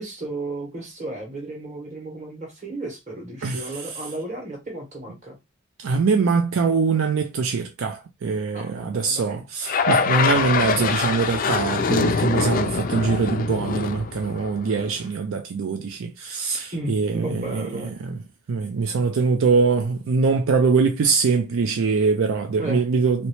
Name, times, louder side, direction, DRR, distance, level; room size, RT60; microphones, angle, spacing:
voice 1, 0.0-5.4 8.5-9.5 16.7-18.0 22.6-22.8, right 2 dB, 35° right, 1.4 m, -34 dB
voice 2, 5.8-18.2 18.5-23.3, right 4 dB, 70° right, 0.4 m, -23 dB
sound 1, 9.7-15.0, left 5 dB, 40° left, 0.3 m, -24 dB
3.1 x 2.9 x 3.0 m
head